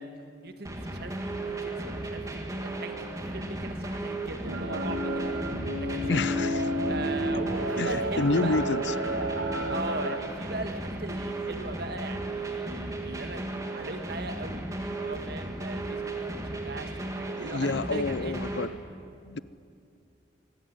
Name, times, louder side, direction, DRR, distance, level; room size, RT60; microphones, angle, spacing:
voice 1, 0.0-5.3 5.8-6.3 6.9-8.6 9.7-13.5 13.7-18.3 19.3-19.4, right 2 dB, 55° right, 7 dB, 1.6 m, -39 dB
sound 1, 0.6-18.6, right 2 dB, 15° right, 1.9 m, -35 dB
sound 2, 4.4-10.2, equal, 85° right, 1.9 m, -31 dB
voice 2, 6.1-6.6 7.8-8.9 17.4-18.7 19.2-19.4, left 3 dB, 65° left, 17 dB, 0.6 m, -29 dB
25.5 x 15.0 x 9.8 m, 2.5 s
head